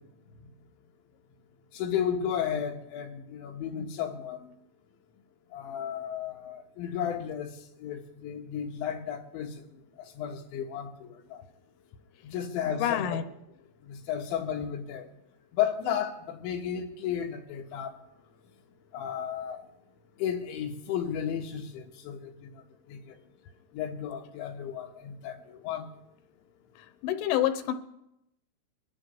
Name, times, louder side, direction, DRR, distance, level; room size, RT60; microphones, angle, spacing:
voice 1, 1.7-4.5 5.5-7.5 7.8-9.6 10.2-11.4 12.2-13.2 13.8-15.0 15.5-17.9 18.9-19.6 20.2-22.5 22.9-23.2 23.7-25.9, left 8 dB, 75° left, 3.5 m, -33 dB
voice 2, 12.7-13.2 27.0-27.7, left 11 dB, 90° left, 3.4 m, -27 dB
24.0 x 12.5 x 3.2 m
omnidirectional pair, 5.6 m